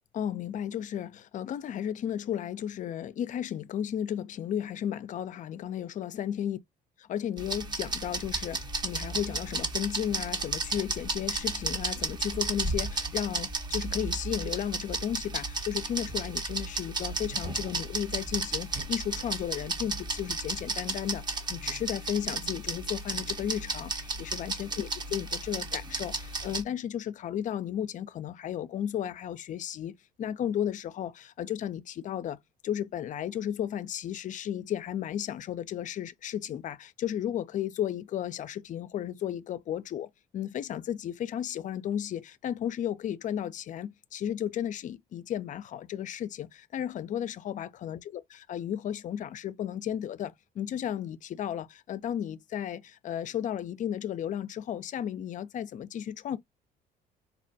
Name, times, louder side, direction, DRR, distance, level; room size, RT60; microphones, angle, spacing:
voice 1, 0.1-6.6 7.1-21.2 21.5-29.9 30.2-32.4 32.6-56.4, left 10 dB, 50° left, 0.5 m, -34 dB
sound 1, 7.4-26.6, right 3 dB, 25° right, 0.7 m, -33 dB
4.2 x 2.1 x 2.6 m
cardioid pair, 110°, 17 cm